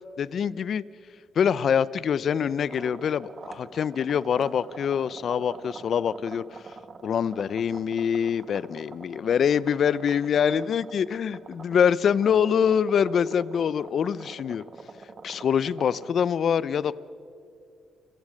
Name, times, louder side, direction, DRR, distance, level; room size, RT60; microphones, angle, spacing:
voice 1, 0.2-0.8 1.4-6.6 7.0-14.6 15.2-17.0, left 7 dB, 55° left, 20 dB, 0.6 m, -25 dB
sound 1, 2.7-16.1, right 4 dB, 40° right, 1.4 m, -45 dB
29.5 x 15.0 x 6.5 m, 2.5 s
cardioid pair, 90°, 0 cm